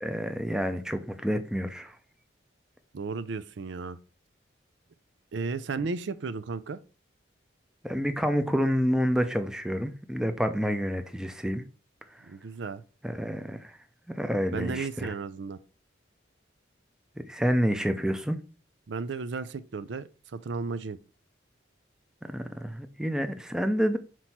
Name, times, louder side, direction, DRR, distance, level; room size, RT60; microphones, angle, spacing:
voice 1, 0.0-2.0 7.8-11.6 13.0-13.8 14.2-15.1 17.3-18.4 22.2-24.0, equal, 5° right, 0.5 m, -28 dB
voice 2, 2.9-4.0 5.3-6.8 12.3-12.8 14.5-15.6 18.9-21.0, right 4 dB, 70° right, 0.5 m, -34 dB
6.1 x 4.5 x 4.2 m
head